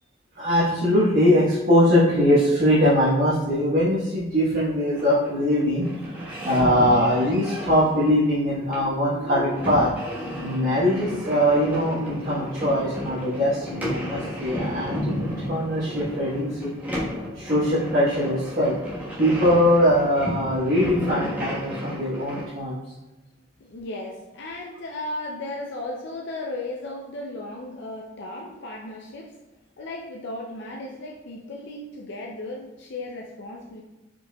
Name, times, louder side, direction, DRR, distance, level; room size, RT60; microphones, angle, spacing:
voice 1, 0.4-9.9 10.4-16.7 17.3-18.8 19.2-22.8, equal, 50° right, -9 dB, 1.2 m, -21 dB
sound 1, 4.9-22.5, equal, 10° right, 1.3 m, -33 dB
voice 2, 23.6-29.3 29.8-33.8, left 2 dB, 60° left, 0 dB, 0.5 m, -35 dB
5.0 x 4.6 x 2.3 m, 1.1 s
head